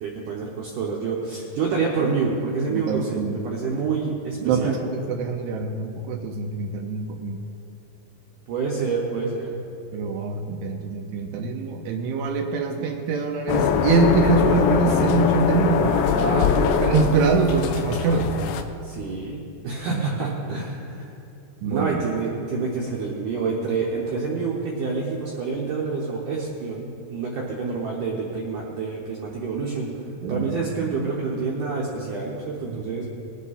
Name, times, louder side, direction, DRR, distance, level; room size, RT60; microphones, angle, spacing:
voice 1, 0.0-4.8 8.5-9.6 15.8-17.0 18.8-21.1 21.6-29.9 30.3-33.0, right 4 dB, 70° right, -3 dB, 2.1 m, -27 dB
voice 2, 2.7-3.4 4.4-7.4 9.9-15.9 16.8-18.3 19.9-20.0 21.6-22.0 30.2-31.1, right 5 dB, 85° right, 2 dB, 2.7 m, -24 dB
sound 1, 13.5-18.6, left 7 dB, 80° left, 2.3 m, -22 dB
20.0 x 8.1 x 4.1 m, 2.6 s
omnidirectional pair, 4.8 m